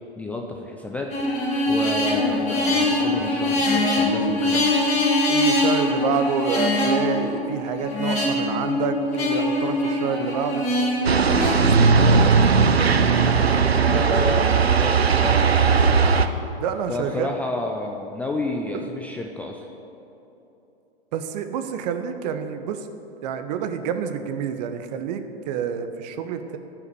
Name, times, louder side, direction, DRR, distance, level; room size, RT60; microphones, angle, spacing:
voice 1, 0.2-1.1 1.7-4.7 13.7-15.5 16.9-19.7, left 2 dB, 5° left, 1 dB, 0.4 m, -30 dB
sound 1, 1.1-11.7, left 1 dB, 20° left, 2.8 m, -23 dB
voice 2, 5.3-10.6 11.2-12.9 13.2-14.4 16.6-17.3 18.7-18.8 21.1-22.9 23.2-26.6, right 7 dB, 40° right, 8 dB, 0.9 m, -28 dB
sound 2, 11.0-16.3, right 5 dB, 90° right, 0.7 m, -18 dB
14.5 x 6.0 x 6.8 m, 3.0 s
figure-of-eight pair, 110°, 31 cm